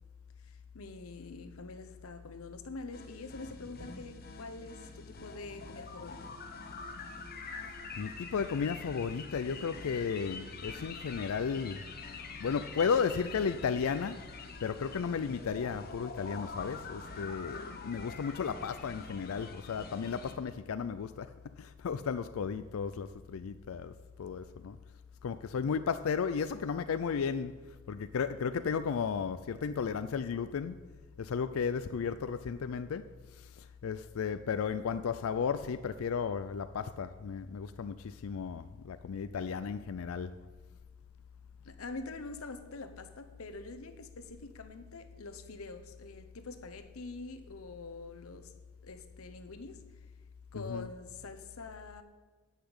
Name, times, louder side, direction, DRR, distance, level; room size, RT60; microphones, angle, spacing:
voice 1, 0.4-6.3 41.6-48.5 48.8-49.8 50.5-52.0, left 3 dB, 85° left, 0.9 m, -45 dB
sound 1, 2.9-20.3, left 4 dB, 45° left, 1.2 m, -46 dB
voice 2, 8.0-11.8 12.4-14.2 14.6-23.9 24.2-24.8 25.2-27.6 27.9-30.8 31.2-40.3 50.5-50.9, left 6 dB, 70° left, 0.4 m, -34 dB
10.0 x 5.8 x 8.0 m
head